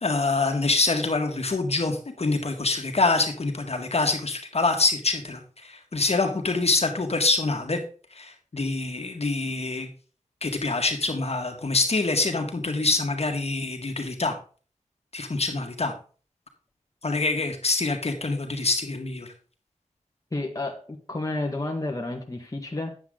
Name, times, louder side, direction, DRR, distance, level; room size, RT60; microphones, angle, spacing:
voice 1, 0.0-7.8 8.1-9.9 10.4-14.3 15.1-15.9 17.0-19.3, left 3 dB, 55° left, 4 dB, 1.8 m, -25 dB
voice 2, 20.3-22.9, left 2 dB, 25° left, 1 dB, 1.5 m, -31 dB
9.6 x 8.2 x 3.8 m, 0.39 s
wide cardioid pair, 80°, 13 cm